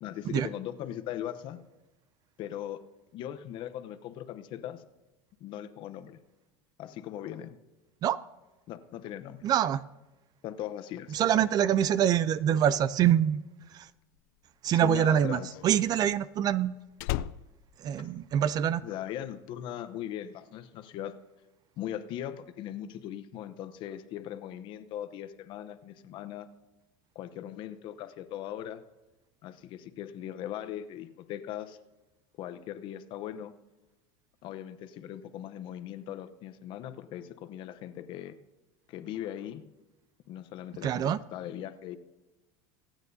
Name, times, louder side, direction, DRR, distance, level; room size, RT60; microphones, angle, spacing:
voice 1, 0.0-1.6 2.4-2.8 3.1-4.8 5.4-6.2 6.8-7.6 8.7-9.5 10.4-11.5 14.7-15.5 18.8-21.1 21.8-26.5 27.1-28.8 29.4-31.8 32.4-33.5 34.4-38.3 38.9-39.6 40.3-42.0, left 11 dB, 50° left, 11 dB, 0.8 m, -39 dB
voice 2, 9.4-9.8 11.1-13.4 13.7-13.9 14.6-16.7 17.8-18.8 40.8-41.2, right 10 dB, 40° right, 17 dB, 0.4 m, -25 dB
Slam, 14.0-18.8 19.1-19.5, left 14 dB, 70° left, 0.4 m, -38 dB
24.5 x 9.0 x 2.7 m, 1.1 s
supercardioid pair, 125°, 10 cm